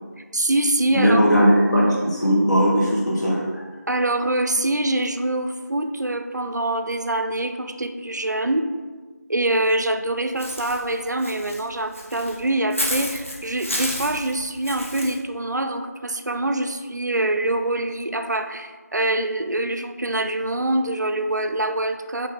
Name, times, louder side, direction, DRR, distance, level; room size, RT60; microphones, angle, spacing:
voice 1, 0.3-1.3 3.9-8.7 9.3-22.3, right 1 dB, 85° right, 7 dB, 0.4 m, -24 dB
voice 2, 0.9-3.6, equal, 80° left, -6 dB, 1.4 m, -18 dB
Walk footsteps / Bird, 10.4-15.2, equal, 50° left, 0.6 m, -31 dB
3.0 x 2.7 x 3.8 m, 1.4 s
figure-of-eight pair, 175°, 9 cm